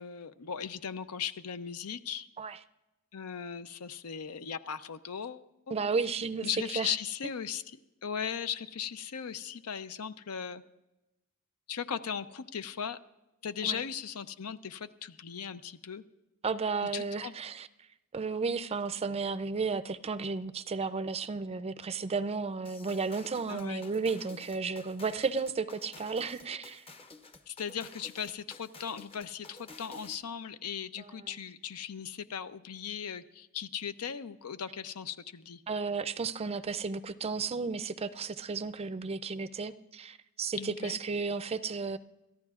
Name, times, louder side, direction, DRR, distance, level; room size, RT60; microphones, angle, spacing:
voice 1, 0.0-2.3 3.1-5.8 6.4-7.6 8.0-10.6 11.7-13.0 13.4-16.0 16.9-17.3 23.5-23.9 27.5-35.6 40.6-41.0, left 7 dB, 80° left, 0.6 m, -38 dB
voice 2, 5.7-6.5 6.7-6.9 13.6-13.8 16.4-17.7 18.1-26.8 31.0-31.3 35.7-42.0, right 4 dB, 25° right, 0.4 m, -33 dB
sound 1, 22.6-30.3, left 3 dB, 25° left, 0.7 m, -52 dB
27.5 x 14.0 x 2.4 m
head